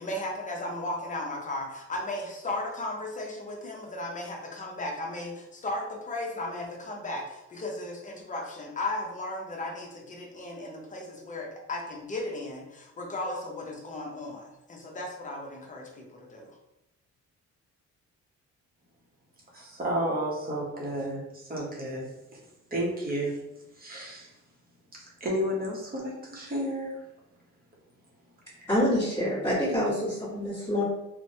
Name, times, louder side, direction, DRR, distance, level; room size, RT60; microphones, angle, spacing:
voice 1, 0.0-16.6, left 2 dB, 25° left, 0 dB, 0.7 m, -35 dB
voice 2, 19.5-22.1 22.7-23.4 23.8-24.3 24.9-27.0, equal, 30° right, -3 dB, 0.8 m, -32 dB
voice 3, 28.7-30.8, left 1 dB, 10° left, -13 dB, 1.4 m, -26 dB
3.0 x 2.1 x 2.7 m, 0.89 s
cardioid pair, 90°, 30 cm